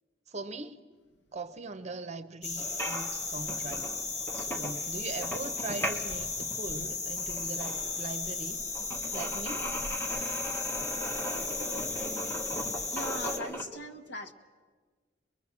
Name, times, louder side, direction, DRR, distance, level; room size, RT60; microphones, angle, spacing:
voice 1, 0.3-0.8 1.3-3.9 4.3-8.7 9.1-9.7, right 3 dB, 40° right, 0.9 m, -40 dB
sound 1, 2.4-13.4, left 3 dB, 40° left, 1.5 m, -35 dB
sound 2, 2.6-13.6, equal, 15° left, 1.6 m, -39 dB
voice 2, 12.9-14.3, left 1 dB, 70° left, 1.6 m, -40 dB
23.5 x 22.0 x 7.5 m
head